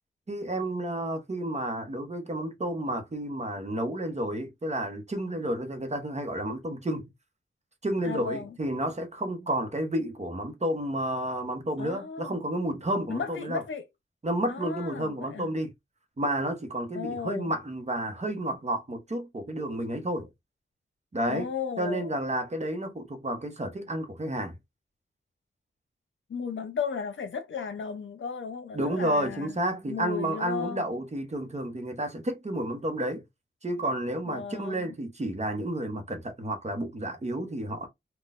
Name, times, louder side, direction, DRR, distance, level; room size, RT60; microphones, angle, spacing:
voice 1, 0.3-7.1 7.8-13.6 14.2-15.7 16.2-20.3 21.1-21.5 21.8-24.5 28.7-33.2 33.6-37.9, right 1 dB, 35° right, 0.9 m, -31 dB
voice 2, 8.0-8.6 11.8-12.4 13.1-13.8 14.5-15.5 16.9-17.5 21.3-22.2 26.3-29.6 29.9-30.8 34.3-34.9, left 6 dB, 75° left, 0.7 m, -35 dB
3.8 x 2.3 x 2.5 m
wide cardioid pair, 80°, 20 cm